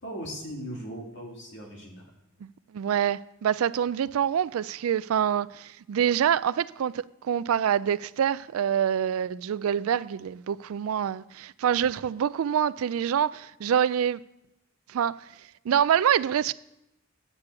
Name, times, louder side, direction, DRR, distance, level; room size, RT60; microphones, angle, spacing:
voice 1, 0.0-2.1, equal, 55° left, 2.5 m, -38 dB
voice 2, 2.7-14.2 14.9-15.2 15.7-16.5, right 9 dB, 85° right, 0.3 m, -26 dB
10.5 x 8.2 x 8.2 m
head